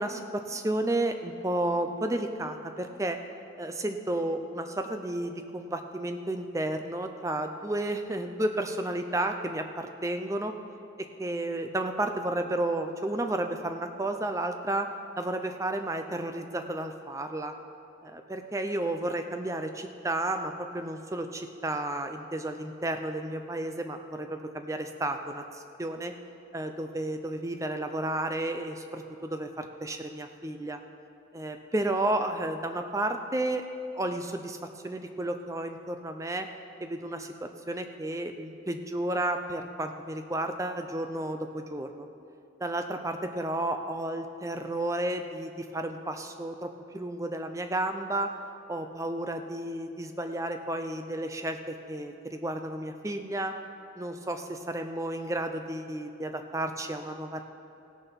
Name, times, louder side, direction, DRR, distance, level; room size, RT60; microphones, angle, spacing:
voice 1, 0.0-3.2 3.6-10.5 11.0-14.9 15.2-17.5 18.0-26.1 26.5-30.8 31.3-33.6 34.0-34.6 34.8-36.5 36.8-42.1 42.6-48.3 48.7-53.5 54.0-57.4, right 1 dB, 15° right, 6 dB, 0.5 m, -32 dB
16.5 x 6.7 x 5.9 m, 2.6 s
head